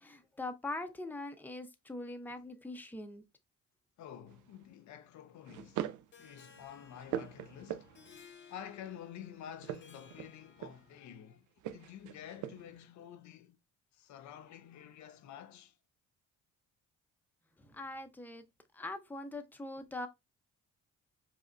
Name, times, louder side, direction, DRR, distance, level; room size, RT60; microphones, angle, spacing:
voice 1, 0.0-3.2 17.6-18.4 18.7-20.1, left 2 dB, 5° left, 0.6 m, -42 dB
voice 2, 4.0-5.9 6.2-8.0 8.5-11.5 11.7-13.6 13.9-15.8, left 9 dB, 70° left, 0.5 m, -50 dB
sound 1, 4.3-4.6 5.4-6.1 6.6-8.2 9.5-11.0 11.6-12.8, right 11 dB, 75° right, 0.5 m, -42 dB
Harp, 6.1-11.1, left 6 dB, 40° left, 0.8 m, -59 dB
5.1 x 2.1 x 2.5 m
cardioid pair, 90°, 30 cm